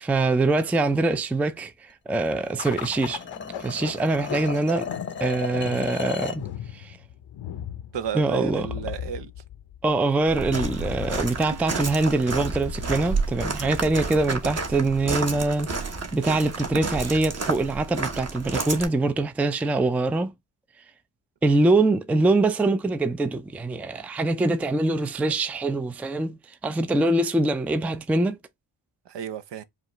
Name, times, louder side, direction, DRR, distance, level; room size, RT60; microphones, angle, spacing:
voice 1, 0.0-3.2 3.6-4.9 5.2-6.4 6.7-7.0 8.1-8.7 9.8-15.7 16.1-20.3 21.4-28.4, right 2 dB, 5° right, 0.3 m, -24 dB
sound 1, 2.1-6.5, left 6 dB, 25° left, 0.7 m, -35 dB
sound 2, 2.6-15.2, left 11 dB, 70° left, 0.6 m, -39 dB
voice 2, 7.9-9.3 29.1-29.6, right 9 dB, 65° right, 0.7 m, -32 dB
Walk footsteps, 10.3-18.9, right 4 dB, 35° right, 1.1 m, -30 dB
4.9 x 2.4 x 3.0 m
cardioid pair, 85°, 45 cm